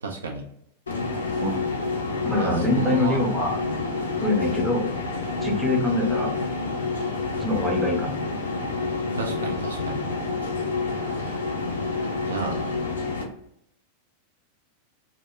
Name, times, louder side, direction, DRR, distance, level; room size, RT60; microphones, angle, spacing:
voice 1, 0.0-0.5 2.4-3.2 9.2-10.0 12.3-12.6, right 4 dB, 70° right, 2 dB, 0.4 m, -32 dB
sound 1, 0.9-13.2, left 3 dB, 70° left, 0.4 m, -28 dB
voice 2, 1.4-1.7 2.2-3.6 4.2-4.9 5.4-6.4 7.4-8.2, left 2 dB, ahead, -1 dB, 0.6 m, -24 dB
2.1 x 2.0 x 3.0 m, 0.75 s
figure-of-eight pair, 90°, 0 cm